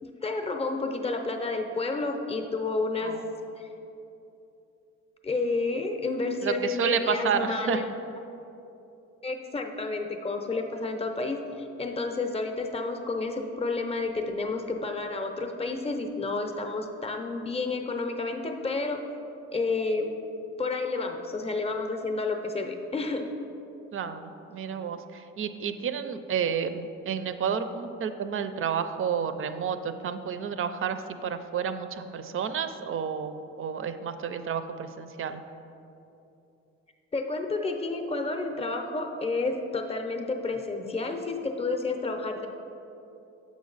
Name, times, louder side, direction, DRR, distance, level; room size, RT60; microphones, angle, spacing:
voice 1, 0.0-3.2 3.6-3.7 5.2-7.9 9.2-19.0 19.5-20.1 20.6-23.3 37.1-42.5, left 3 dB, 20° left, 4 dB, 0.6 m, -30 dB
voice 2, 6.4-7.8 23.9-35.4, right 7 dB, 45° right, 10 dB, 0.4 m, -30 dB
7.1 x 5.1 x 3.9 m, 2.8 s
cardioid pair, 90°, 30 cm